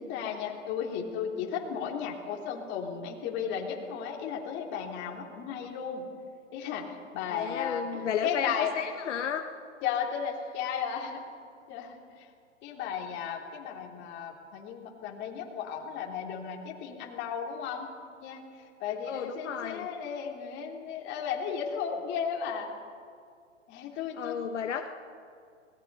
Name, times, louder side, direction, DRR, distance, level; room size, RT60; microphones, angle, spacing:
voice 1, 0.0-6.1 6.5-8.7 9.8-11.2 11.7-12.3 12.6-17.9 18.2-22.7 23.7-24.4, left 7 dB, 30° left, 0 dB, 3.4 m, -35 dB
voice 2, 7.3-9.5 19.1-19.9 24.2-24.9, left 7 dB, 65° left, 4 dB, 1.5 m, -33 dB
25.5 x 19.5 x 5.5 m, 2.3 s
hypercardioid pair, 135°, 38 cm